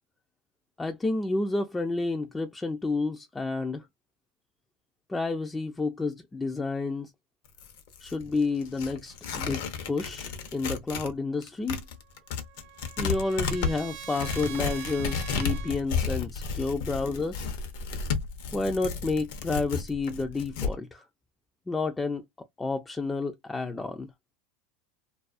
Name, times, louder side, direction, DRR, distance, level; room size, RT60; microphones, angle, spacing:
voice 1, 0.8-3.9 5.1-7.1 8.0-11.8 13.0-17.5 18.5-21.1 21.7-22.3 22.6-24.1, left 3 dB, 15° left, 0.3 m, -30 dB
Tearing, 7.4-11.1 11.4-20.7, left 5 dB, 70° left, 0.6 m, -33 dB
Trumpet, 11.9-15.8, right 12 dB, 60° right, 0.6 m, -44 dB
2.3 x 2.3 x 2.4 m
supercardioid pair, 115°, 0 cm